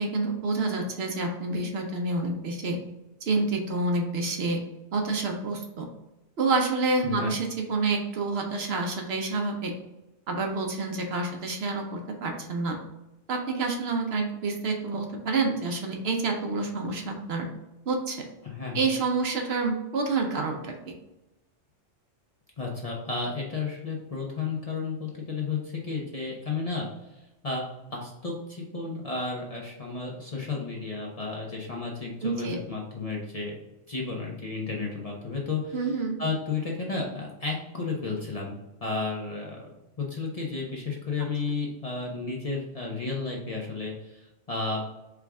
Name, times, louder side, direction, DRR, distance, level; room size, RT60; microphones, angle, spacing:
voice 1, 0.0-2.8 3.2-4.6 4.9-5.9 6.4-9.7 10.3-11.8 12.2-12.8 13.3-17.5 17.9-18.3 18.7-20.9 32.2-32.6 35.7-36.2, right 3 dB, 60° right, 2 dB, 0.9 m, -28 dB
voice 2, 18.4-18.8 22.6-26.9 27.4-27.6 27.9-33.5 33.9-35.9 36.2-39.6 40.0-44.8, left 4 dB, 40° left, -2 dB, 0.7 m, -32 dB
4.7 x 2.4 x 3.4 m, 0.96 s
omnidirectional pair, 1.3 m